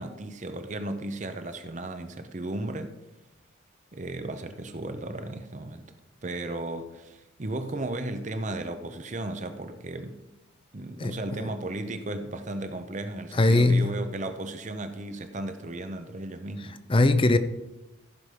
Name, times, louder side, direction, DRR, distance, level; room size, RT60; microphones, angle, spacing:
voice 1, 0.0-3.0 3.9-5.9 6.2-10.2 10.7-16.8, right 2 dB, 35° right, 0.7 m, -35 dB
voice 2, 13.4-14.0 16.9-17.4, left 2 dB, 25° left, 0.5 m, -20 dB
15.0 x 5.2 x 5.0 m
head